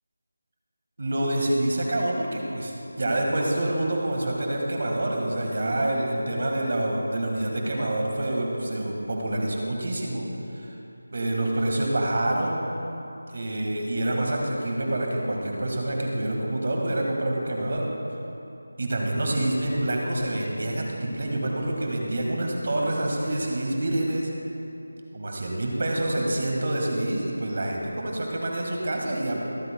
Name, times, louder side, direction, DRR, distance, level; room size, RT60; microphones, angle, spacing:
voice 1, 1.0-2.7 3.0-10.3 10.6-10.7 11.1-12.6 13.3-17.9 18.8-24.3 25.1-29.4, right 1 dB, 45° right, 0 dB, 1.8 m, -27 dB
23.5 x 8.1 x 2.3 m, 2.9 s
figure-of-eight pair, 175°, 0 cm